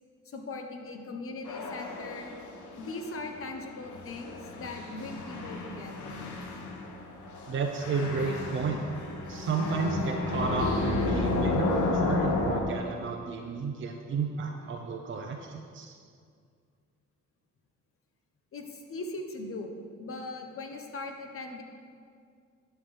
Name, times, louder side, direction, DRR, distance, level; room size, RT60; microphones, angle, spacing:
voice 1, 0.2-2.4 2.8-6.2 18.5-21.6, left 2 dB, 45° left, 3 dB, 1.0 m, -40 dB
sound 1, 1.4-12.6, left 2 dB, 75° left, 0.9 m, -32 dB
voice 2, 7.5-8.8 9.3-16.0, right 4 dB, 40° right, 2 dB, 0.6 m, -32 dB
10.5 x 5.9 x 3.3 m, 2.1 s
cardioid pair, 90°, 30 cm